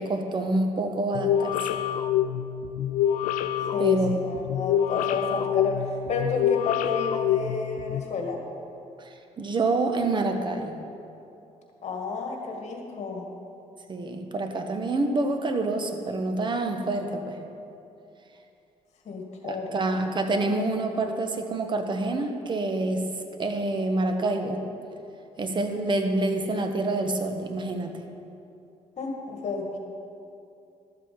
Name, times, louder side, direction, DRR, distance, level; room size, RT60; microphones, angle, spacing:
voice 1, 0.0-1.6 3.8-4.1 9.0-10.8 13.9-17.4 19.4-23.1 23.4-24.6 25.4-28.0, right 2 dB, 35° right, 5 dB, 1.2 m, -27 dB
sound 1, 1.1-8.0, left 10 dB, 85° left, 0.4 m, -26 dB
voice 2, 3.7-5.7 6.1-8.4 11.8-13.3 19.1-19.8 29.0-29.8, left 4 dB, 60° left, 1 dB, 2.0 m, -31 dB
12.5 x 7.5 x 5.9 m, 2.7 s
cardioid pair, 90°, 13 cm